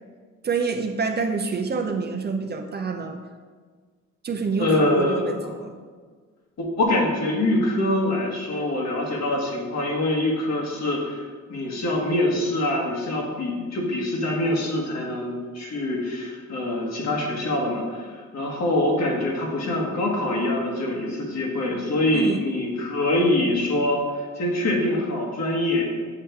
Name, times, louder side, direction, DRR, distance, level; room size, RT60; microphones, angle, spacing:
voice 1, 0.4-3.2 4.2-5.7 22.1-22.4, right 4 dB, 35° right, 4 dB, 0.6 m, -27 dB
voice 2, 4.6-5.5 6.6-11.2 11.5-25.9, left 1 dB, 60° left, -1 dB, 1.6 m, -24 dB
7.5 x 3.3 x 4.6 m, 1.5 s
cardioid pair, 90°, 30 cm